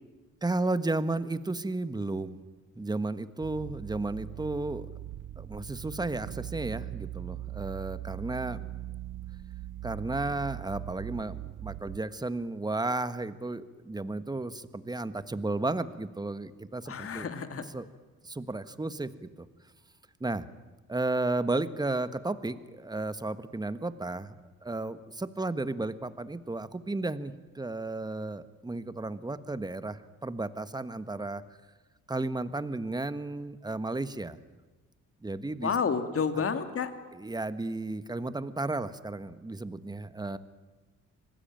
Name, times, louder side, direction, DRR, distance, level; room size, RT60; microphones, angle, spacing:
voice 1, 0.4-2.4 2.8-4.9 5.4-8.6 9.8-17.3 17.7-17.9 18.2-19.5 20.2-20.4 20.9-24.3 24.6-31.4 32.1-34.4 35.2-35.7 37.1-40.4, right 2 dB, 15° right, 12 dB, 1.4 m, -33 dB
sound 1, 3.4-12.0, right 14 dB, 70° right, 1.1 m, -40 dB
voice 2, 16.9-17.7 35.6-36.9, left 6 dB, 45° left, 8 dB, 2.5 m, -30 dB
26.0 x 19.5 x 9.1 m, 1.3 s
cardioid pair, 90°, 30 cm